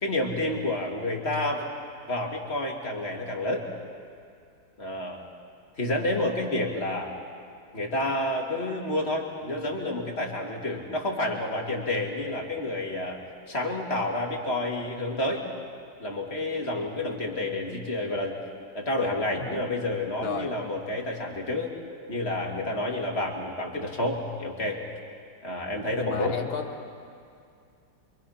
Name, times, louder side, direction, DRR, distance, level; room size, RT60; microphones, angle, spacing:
voice 1, 0.0-1.7 2.1-3.7 4.8-5.2 5.8-7.1 7.7-13.2 13.5-15.4 16.0-18.4 18.7-21.7 22.1-24.8 25.4-26.4, left 1 dB, 30° left, 0 dB, 2.8 m, -29 dB
voice 2, 20.2-20.5 25.8-26.7, left 5 dB, 85° left, 1 dB, 2.4 m, -33 dB
28.0 x 24.5 x 5.8 m, 2.4 s
omnidirectional pair, 2.2 m